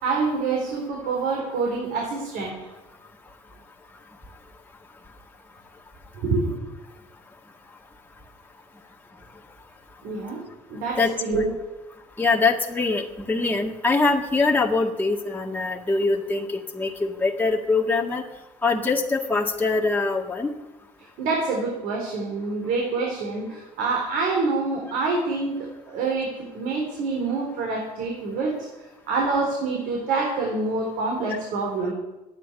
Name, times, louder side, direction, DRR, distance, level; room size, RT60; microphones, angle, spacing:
voice 1, 0.0-2.7 6.2-6.7 10.0-10.4 10.7-11.5 21.2-28.6 29.1-31.9, right 3 dB, 85° right, -1 dB, 3.9 m, -26 dB
voice 2, 11.0-11.5 12.2-18.2 18.6-20.5, left 3 dB, 10° left, -1 dB, 1.8 m, -23 dB
13.0 x 9.7 x 9.8 m, 1.1 s
cardioid pair, 105°, 14 cm